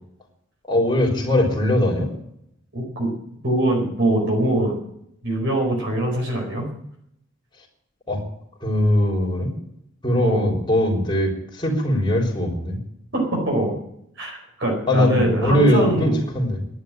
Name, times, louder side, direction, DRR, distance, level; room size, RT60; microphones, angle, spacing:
voice 1, 0.7-2.1 8.1-8.2 8.6-9.5 10.0-12.8 14.9-16.6, left 1 dB, 20° left, -1 dB, 3.6 m, -20 dB
voice 2, 2.7-3.1 3.4-4.8 5.2-6.7 10.2-10.6 13.1-13.8 14.2-16.2, right 1 dB, 55° right, 0 dB, 4.7 m, -22 dB
11.0 x 11.0 x 8.9 m, 0.74 s
head